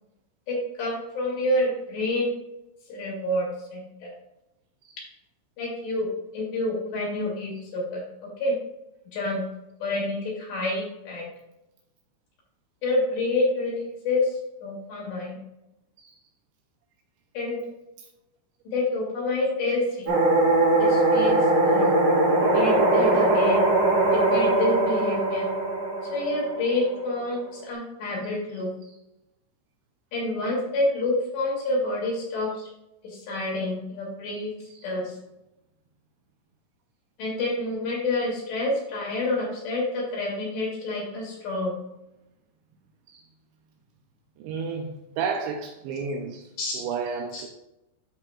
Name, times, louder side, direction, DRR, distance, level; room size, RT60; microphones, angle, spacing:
voice 1, 0.5-2.3 2.9-4.1 5.6-6.1 6.3-8.0 8.4-8.6 9.1-9.4 9.8-11.2 12.8-15.4 17.3-17.6 18.7-20.2 20.8-21.9 22.5-23.6 24.1-25.4 26.1-28.7 30.1-32.7 33.0-34.5 34.8-35.1 37.2-41.7 46.6-46.8 47.3-47.4, left 2 dB, 65° left, 4.5 m, -28 dB
sound 1, 20.1-27.0, right 2 dB, 65° right, 4.2 m, -21 dB
voice 2, 44.4-46.5 46.7-47.5, right 5 dB, 80° right, 2.7 m, -32 dB
13.5 x 4.8 x 2.4 m
omnidirectional pair, 5.6 m